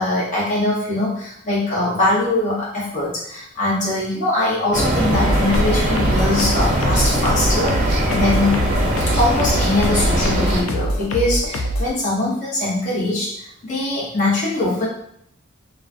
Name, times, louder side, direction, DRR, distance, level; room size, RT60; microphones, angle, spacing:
voice 1, 0.0-8.6 9.1-13.3 13.6-14.9, left 2 dB, 35° left, -7 dB, 0.8 m, -22 dB
sound 1, 4.7-10.6, right 1 dB, 40° right, 0.5 m, -21 dB
sound 2, 5.1-11.9, equal, 85° left, 0.4 m, -24 dB
2.4 x 2.1 x 2.4 m, 0.72 s
head